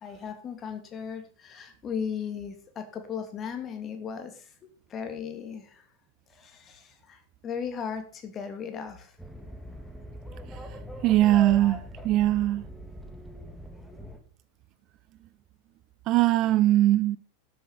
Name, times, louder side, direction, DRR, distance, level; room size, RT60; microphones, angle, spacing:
voice 1, 0.0-4.5 4.9-5.9 6.3-9.2, left 7 dB, 25° left, 2.8 m, -37 dB
sound 1, 9.2-14.2, equal, ahead, 2.1 m, -41 dB
voice 2, 11.0-11.8 12.0-12.6 16.1-17.2, right 14 dB, 35° right, 0.6 m, -21 dB
13.5 x 8.0 x 5.8 m
figure-of-eight pair, 90°, 0 cm